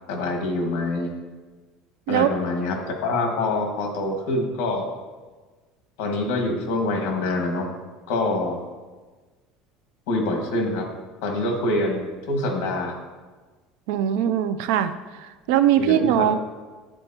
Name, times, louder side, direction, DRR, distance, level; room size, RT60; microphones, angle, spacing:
voice 1, 0.1-1.1 2.1-4.9 6.0-7.7 8.1-8.6 10.1-10.9 11.2-12.9 15.8-16.2, left 2 dB, 65° left, 2 dB, 1.5 m, -25 dB
voice 2, 13.9-16.4, right 10 dB, 65° right, 11 dB, 0.4 m, -21 dB
10.5 x 4.4 x 2.8 m, 1.3 s
cardioid pair, 175°, 0 cm